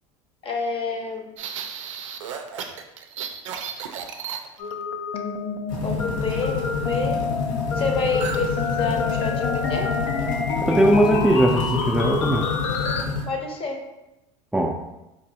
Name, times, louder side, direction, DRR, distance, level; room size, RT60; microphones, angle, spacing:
voice 1, 0.4-1.4 5.8-7.3 7.7-9.9 13.3-13.8, left 4 dB, 35° left, 3 dB, 0.7 m, -28 dB
sound 1, 1.4-4.8 8.2-8.5 8.7-9.0 9.4-9.8, right 7 dB, 90° right, 0.4 m, -34 dB
sound 2, 4.6-13.0, left 5 dB, 75° left, 0.5 m, -28 dB
sound 3, 5.7-13.2, left 4 dB, 55° left, 1.1 m, -28 dB
voice 2, 10.6-12.5 14.5-14.8, right 1 dB, 5° right, 0 dB, 0.3 m, -19 dB
4.0 x 2.6 x 2.7 m, 0.94 s
hypercardioid pair, 85°, 16 cm